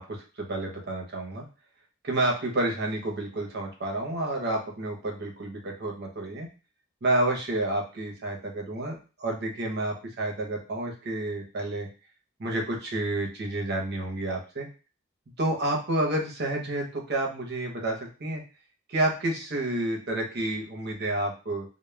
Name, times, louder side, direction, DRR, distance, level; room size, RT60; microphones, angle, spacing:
voice 1, 0.0-1.4 2.0-6.5 7.0-11.9 12.4-14.7 15.4-18.4 18.9-21.6, right 1 dB, 55° right, 1 dB, 0.7 m, -29 dB
2.2 x 2.1 x 3.1 m, 0.33 s
head